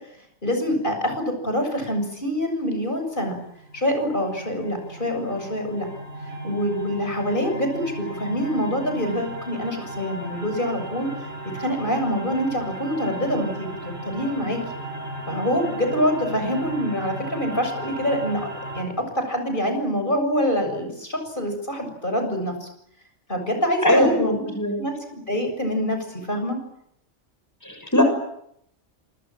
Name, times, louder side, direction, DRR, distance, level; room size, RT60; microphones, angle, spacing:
voice 1, 0.4-3.4 3.7-5.9 6.4-11.1 11.5-14.6 15.3-18.5 18.7-22.7 23.3-24.5 24.8-26.6, equal, 40° left, 5 dB, 7.5 m, -25 dB
sound 1, 3.5-18.8, right 1 dB, 55° right, 6.3 m, -36 dB
voice 2, 23.8-24.8 27.6-28.0, left 1 dB, 15° left, 5 dB, 6.6 m, -20 dB
27.5 x 26.0 x 7.6 m, 0.73 s
omnidirectional pair, 1.3 m